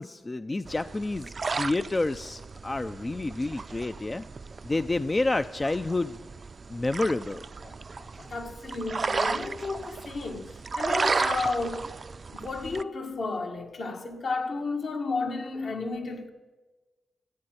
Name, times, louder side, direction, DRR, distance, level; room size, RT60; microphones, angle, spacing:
voice 1, 0.0-4.3 4.6-6.2 6.7-7.4, left 2 dB, 30° left, 0.4 m, -29 dB
sound 1, 0.7-12.8, right 4 dB, 50° right, 0.4 m, -34 dB
voice 2, 7.6-11.8 12.3-16.3, left 3 dB, 65° left, 1.8 m, -33 dB
14.0 x 8.7 x 7.9 m
cardioid pair, 65°, 0 cm